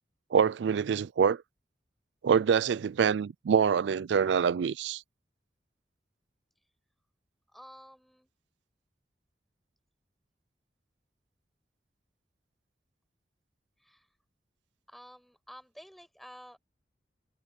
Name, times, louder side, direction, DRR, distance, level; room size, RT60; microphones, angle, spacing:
voice 1, 0.3-1.4 2.2-5.0, right 7 dB, 85° right, 0.4 m, -25 dB
voice 2, 7.5-8.3 13.8-14.1 14.9-16.6, equal, ahead, 7.4 m, -51 dB
head